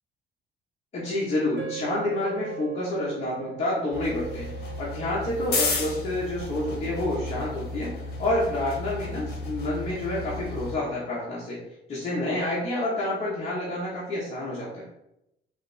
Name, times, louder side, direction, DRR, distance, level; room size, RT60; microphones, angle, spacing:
voice 1, 0.9-4.5 4.8-7.9 8.2-11.6 11.9-14.8, left 1 dB, 35° left, -7 dB, 1.2 m, -28 dB
sound 1, 1.6-9.9, right 10 dB, 80° right, 1.0 m, -43 dB
sound 2, 3.9-10.8, left 3 dB, 60° left, 1.2 m, -33 dB
5.0 x 2.7 x 3.4 m, 0.84 s
cardioid pair, 130°, 19 cm